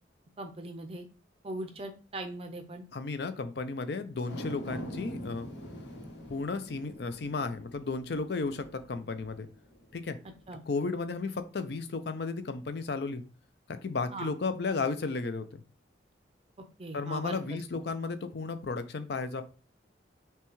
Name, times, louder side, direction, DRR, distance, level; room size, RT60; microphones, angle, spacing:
voice 1, 0.4-1.1 1.4-2.9 10.5-10.6 14.1-14.3 16.8-17.6, right 2 dB, 30° right, 6 dB, 0.5 m, -39 dB
voice 2, 2.9-5.5 6.3-9.5 9.9-10.2 10.7-13.2 13.7-15.6 16.9-19.4, left 4 dB, 60° left, 10 dB, 0.5 m, -34 dB
sound 1, 4.1-10.7 11.1-11.2, equal, 80° left, 1.1 m, -44 dB
5.8 x 2.3 x 3.1 m, 0.35 s
head